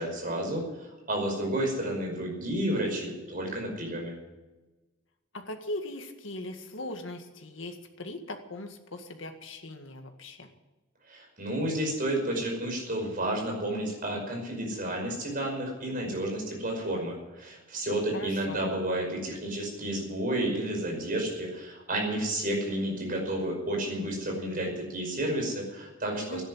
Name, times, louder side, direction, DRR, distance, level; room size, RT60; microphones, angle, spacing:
voice 1, 0.0-4.1 11.1-26.4, right 1 dB, 45° right, 1 dB, 5.4 m, -31 dB
voice 2, 5.3-10.5 18.1-18.7 26.1-26.4, left 1 dB, 70° left, 5 dB, 1.9 m, -39 dB
13.5 x 10.5 x 9.8 m, 1.1 s
head